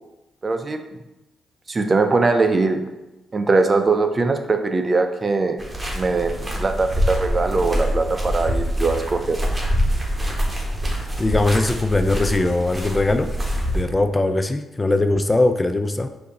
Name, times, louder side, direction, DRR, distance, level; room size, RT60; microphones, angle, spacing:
voice 1, 0.4-0.8 1.7-2.8 3.3-5.6 5.9-9.4, right 3 dB, 40° right, 6 dB, 0.5 m, -21 dB
sound 1, 5.6-13.8, equal, 20° right, 1.3 m, -25 dB
voice 2, 11.2-13.3 13.7-16.1, left 2 dB, 25° left, 8 dB, 0.4 m, -20 dB
5.0 x 2.6 x 3.9 m, 1.0 s
supercardioid pair, 55°, 0 cm